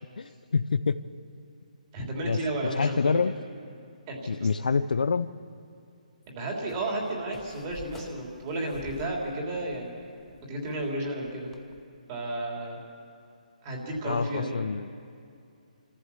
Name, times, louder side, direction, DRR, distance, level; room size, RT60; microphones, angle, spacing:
voice 1, 0.2-1.0 2.2-2.4 2.8-3.3 4.3-5.3 14.0-14.9, left 5 dB, 85° left, 14 dB, 0.7 m, -26 dB
voice 2, 1.9-3.2 4.1-4.5 6.3-10.1 10.5-11.5 12.1-12.8 13.6-14.6, right 1 dB, 25° right, -1 dB, 3.3 m, -32 dB
sound 1, 6.7-11.8, left 4 dB, 5° left, 0.7 m, -50 dB
25.0 x 14.5 x 7.1 m, 2.5 s
hypercardioid pair, 165°, 4 cm